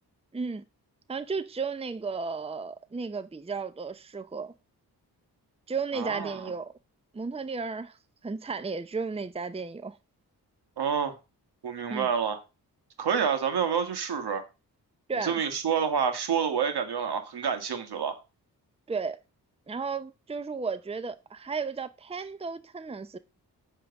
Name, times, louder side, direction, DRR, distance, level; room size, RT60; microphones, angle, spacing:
voice 1, 0.3-0.6 1.1-4.5 5.7-6.7 7.1-8.0 8.2-10.0 11.9-12.1 15.1-15.4 18.9-19.2 19.7-23.2, right 4 dB, 15° right, 0.7 m, -34 dB
voice 2, 5.9-6.5 10.8-11.2 11.6-12.4 13.0-14.4 15.2-18.2, right 7 dB, 75° right, 1.8 m, -28 dB
9.2 x 3.8 x 7.1 m
cardioid pair, 55°, 39 cm